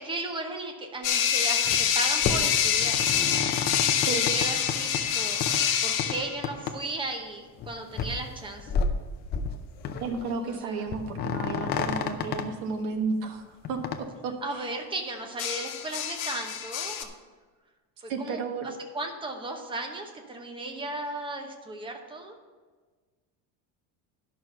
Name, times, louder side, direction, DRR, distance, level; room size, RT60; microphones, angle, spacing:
voice 1, 0.0-3.0 4.1-5.4 5.8-8.9 10.5-10.8 14.4-17.1 18.0-22.4, right 2 dB, 10° right, 4 dB, 0.9 m, -36 dB
sound 1, 1.0-6.4 9.9-10.2 15.4-17.0, left 8 dB, 45° left, 1.0 m, -26 dB
sound 2, 1.6-1.9 2.2-5.0 5.4-5.6 6.0-6.2 6.4-6.8 7.0-7.1 7.6-7.7 7.9-8.2 8.6-9.5 9.8-10.3 10.5-10.6 10.9-12.4 13.6-14.0, left 5 dB, 25° left, 0.5 m, -30 dB
voice 2, 10.0-14.7 18.1-18.7, right 4 dB, 85° right, 4 dB, 1.5 m, -33 dB
11.0 x 6.2 x 5.5 m, 1.4 s
cardioid pair, 170°, 42 cm